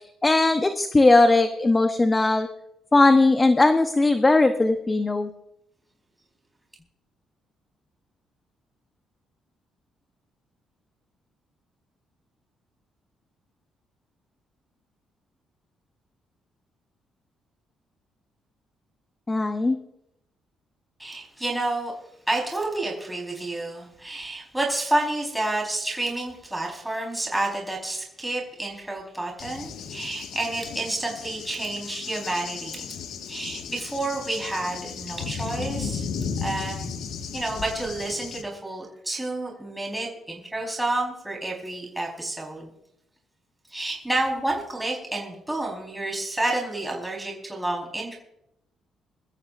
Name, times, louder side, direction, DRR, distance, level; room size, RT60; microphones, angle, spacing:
voice 1, 0.2-2.5 2.9-5.3 19.3-19.8, left 2 dB, 20° left, 7 dB, 1.0 m, -19 dB
voice 2, 21.0-21.9 22.3-32.9 33.3-36.0 36.4-36.9 37.3-42.7 43.7-48.2, right 2 dB, 5° right, -1 dB, 4.4 m, -29 dB
Cricket / Thunder, 29.4-38.4, left 6 dB, 85° left, 1.7 m, -35 dB
24.0 x 13.5 x 2.6 m, 0.80 s
cardioid pair, 90°, 0 cm